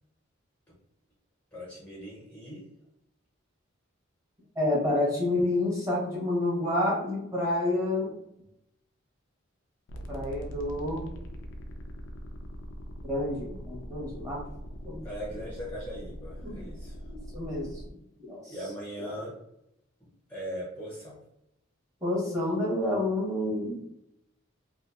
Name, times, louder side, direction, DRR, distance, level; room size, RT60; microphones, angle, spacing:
voice 1, 1.5-2.6 15.0-17.0 18.4-19.4 20.0-21.2, equal, 5° left, -7 dB, 0.6 m, -40 dB
voice 2, 4.5-8.1 10.1-11.1 13.1-14.4 14.8-15.0 16.4-16.7 17.1-17.8 18.2-18.5 19.0-19.2 22.0-23.8, left 1 dB, 15° right, -5 dB, 0.9 m, -29 dB
sound 1, 9.9-17.9, equal, 65° left, 0.4 m, -42 dB
2.7 x 2.4 x 2.3 m, 0.80 s
head